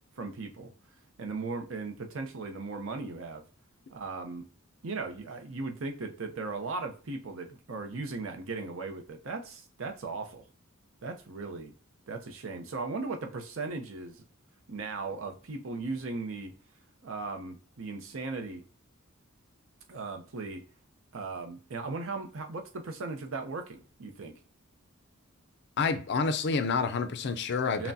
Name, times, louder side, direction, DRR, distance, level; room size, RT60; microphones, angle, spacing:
voice 1, 0.2-0.7 1.2-3.4 3.9-4.5 4.8-10.4 11.0-11.7 12.1-14.2 14.7-16.5 17.0-18.6 19.9-20.7 21.1-24.3 27.7-27.9, right 3 dB, 70° right, 0.7 m, -37 dB
voice 2, 25.8-27.9, left 5 dB, 55° left, 0.5 m, -28 dB
5.7 x 2.1 x 2.7 m
head